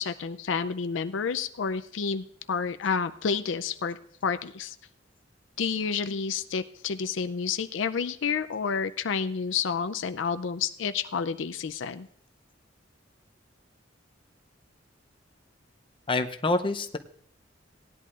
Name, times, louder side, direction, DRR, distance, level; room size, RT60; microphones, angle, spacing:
voice 1, 0.0-4.8 5.6-12.1, left 6 dB, 75° left, 11 dB, 0.5 m, -30 dB
voice 2, 16.1-17.0, left 2 dB, 25° left, 6 dB, 0.6 m, -26 dB
18.0 x 11.0 x 2.5 m, 0.62 s
head